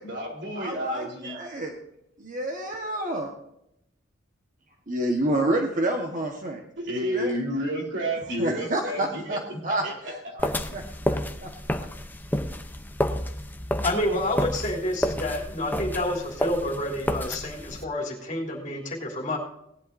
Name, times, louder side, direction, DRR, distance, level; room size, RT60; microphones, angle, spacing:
voice 1, 0.0-1.4 6.8-10.1, right 1 dB, 65° right, -1 dB, 4.0 m, -31 dB
voice 2, 0.6-1.7 2.2-3.3 4.9-6.6 7.0-7.3 8.4-10.8 11.1-11.5, right 1 dB, 45° right, 2 dB, 1.4 m, -29 dB
sound 1, 10.4-17.8, left 1 dB, 10° left, 0.7 m, -30 dB
voice 3, 13.8-19.4, left 1 dB, 40° left, -2 dB, 3.3 m, -29 dB
18.5 x 11.0 x 2.7 m, 0.77 s
head